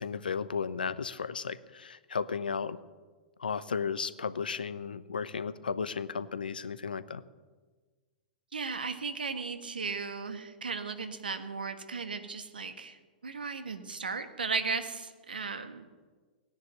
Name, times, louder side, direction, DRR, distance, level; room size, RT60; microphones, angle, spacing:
voice 1, 0.0-2.8 3.4-7.2, left 6 dB, 75° left, 16 dB, 0.8 m, -34 dB
voice 2, 8.5-13.0 13.2-15.8, right 4 dB, 75° right, 9 dB, 1.5 m, -36 dB
17.0 x 10.5 x 8.1 m, 1.4 s
figure-of-eight pair, 105°, 5 cm